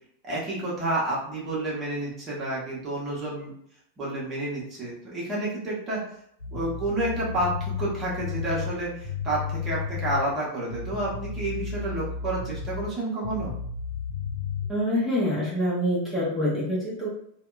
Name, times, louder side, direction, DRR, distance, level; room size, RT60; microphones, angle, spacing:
voice 1, 0.2-3.5 4.0-6.2 6.5-13.5, right 1 dB, 30° right, -5 dB, 1.0 m, -30 dB
sound 1, 6.4-10.3 10.7-12.9 13.2-14.7, left 6 dB, 75° left, 0.6 m, -33 dB
voice 2, 14.7-17.1, equal, 10° left, -7 dB, 0.8 m, -26 dB
2.7 x 2.1 x 2.3 m, 0.69 s
figure-of-eight pair, 90°, 0 cm